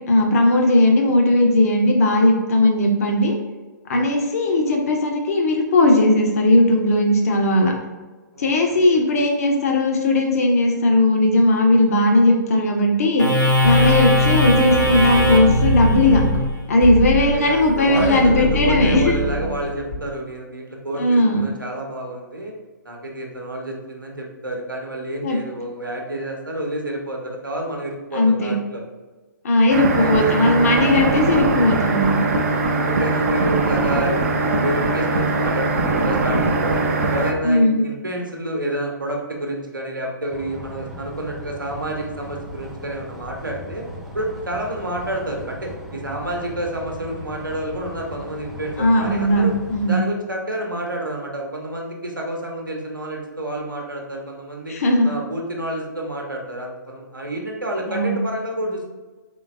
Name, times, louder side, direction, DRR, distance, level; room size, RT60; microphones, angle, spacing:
voice 1, 0.1-3.3 3.9-7.7 8.4-13.3 13.6-16.2 16.7-19.1 21.0-21.4 25.2-25.4 28.1-28.5 29.4-32.3 37.4-37.8 48.8-50.0 54.7-55.1 57.9-58.2, left 1 dB, 50° left, 2 dB, 0.7 m, -17 dB
voice 2, 8.3-9.0 17.1-22.5 22.8-28.8 30.0-30.4 30.7-31.4 32.7-36.8 37.1-43.8 44.1-49.5 49.8-54.7 55.0-58.9, right 1 dB, 85° right, 0 dB, 0.8 m, -29 dB
sound 1, 13.2-20.0, left 1 dB, 80° left, 1.3 m, -20 dB
sound 2, 29.7-37.3, right 3 dB, 45° right, 0.5 m, -21 dB
sound 3, 40.3-49.9, left 1 dB, 5° right, 0.6 m, -38 dB
3.8 x 3.2 x 2.5 m, 1.3 s
figure-of-eight pair, 120°, 11 cm